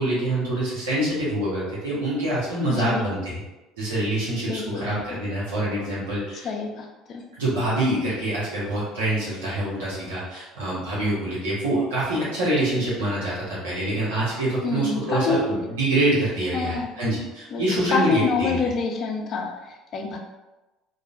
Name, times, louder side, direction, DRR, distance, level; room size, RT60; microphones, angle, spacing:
voice 1, 0.0-3.4 3.8-6.5 7.4-18.6, right 1 dB, 85° right, -9 dB, 0.8 m, -25 dB
voice 2, 2.7-3.0 4.5-5.2 6.4-7.2 14.6-15.4 16.5-16.9 17.5-20.2, left 4 dB, 50° left, 1 dB, 0.5 m, -27 dB
2.6 x 2.0 x 2.4 m, 1.1 s
hypercardioid pair, 70°, 0 cm